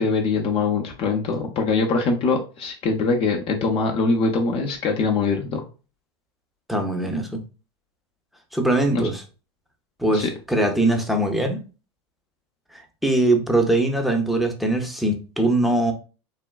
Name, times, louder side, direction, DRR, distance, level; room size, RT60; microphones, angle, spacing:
voice 1, 0.0-5.6 8.9-9.1 10.1-10.3, left 4 dB, 40° left, 0.5 m, -23 dB
voice 2, 6.7-7.4 8.5-9.2 10.0-11.6 13.0-15.9, right 1 dB, ahead, 0.6 m, -21 dB
3.3 x 2.2 x 2.2 m
hypercardioid pair, 95°, 15 cm